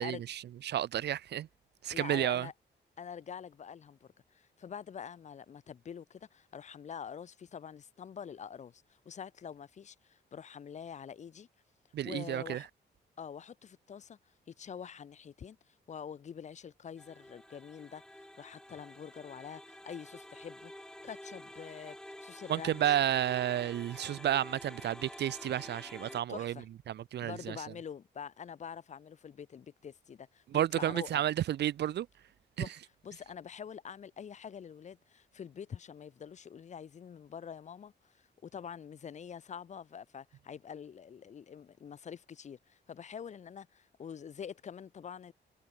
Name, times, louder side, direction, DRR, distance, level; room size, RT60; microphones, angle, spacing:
voice 1, 0.0-1.5 1.8-2.5 11.9-12.6 22.5-26.5 26.9-27.6 30.5-32.1 32.6-32.7, right 11 dB, 70° right, 0.7 m, -31 dB
voice 2, 1.9-2.5 3.0-11.5 12.0-12.7 13.2-14.2 14.5-20.7 21.0-23.0 26.3-26.7 27.2-31.3 32.6-32.8 33.0-45.3, left 7 dB, 40° left, 0.7 m, -46 dB
sound 1, 17.0-26.2, left 1 dB, 5° left, 0.6 m, -49 dB
wide cardioid pair, 150°, 18 cm